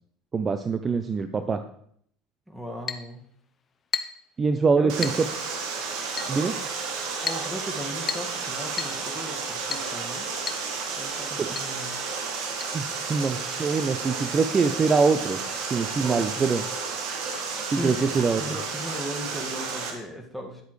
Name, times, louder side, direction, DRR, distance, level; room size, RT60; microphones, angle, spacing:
voice 1, 0.3-1.6 4.4-5.1 6.3-6.5 11.4-11.5 12.7-12.8 13.1-15.4 15.7-16.6 17.6-18.4, right 4 dB, 30° right, 9 dB, 0.6 m, -24 dB
voice 2, 2.5-3.3 4.8-5.1 7.2-10.3 11.0-12.0 16.0-16.5 17.7-20.6, equal, ahead, 2 dB, 1.9 m, -37 dB
Chink clink, 2.9-3.1 3.9-4.3 5.0-5.3 6.2-6.4 7.3-7.5 8.1-8.4 8.8-9.0 9.7-9.9 10.5-10.7 10.9-11.0 11.6-11.7 12.6-12.7, left 6 dB, 35° left, 0.7 m, -32 dB
Water, 4.9-19.9, right 4 dB, 65° right, 1.7 m, -32 dB
10.5 x 8.0 x 3.2 m, 0.66 s
hypercardioid pair, 75°, 0 cm